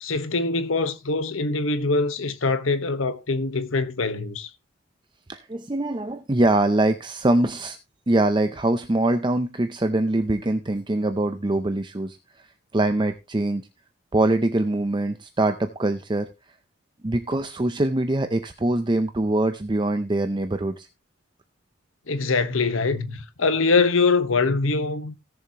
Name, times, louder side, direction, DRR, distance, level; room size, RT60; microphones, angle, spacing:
voice 1, 0.0-4.5 22.1-25.1, left 3 dB, 80° left, 1.2 m, -23 dB
voice 2, 5.3-7.8 8.1-12.5 12.7-13.6 14.1-16.3 17.0-20.9, right 2 dB, 25° right, 0.6 m, -23 dB
17.5 x 7.0 x 2.9 m
head